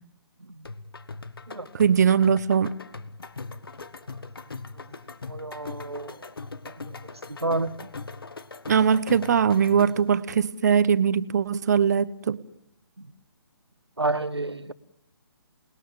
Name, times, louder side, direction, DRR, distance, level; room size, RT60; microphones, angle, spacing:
sound 1, 0.6-10.2, left 3 dB, 60° left, 1.4 m, -40 dB
voice 1, 1.7-2.7 8.7-12.4, right 7 dB, 40° right, 16 dB, 1.0 m, -21 dB
voice 2, 5.3-6.2 7.4-7.7 14.0-14.7, right 2 dB, 80° right, 14 dB, 1.4 m, -29 dB
28.5 x 20.5 x 7.3 m, 0.72 s
figure-of-eight pair, 140°, 13 cm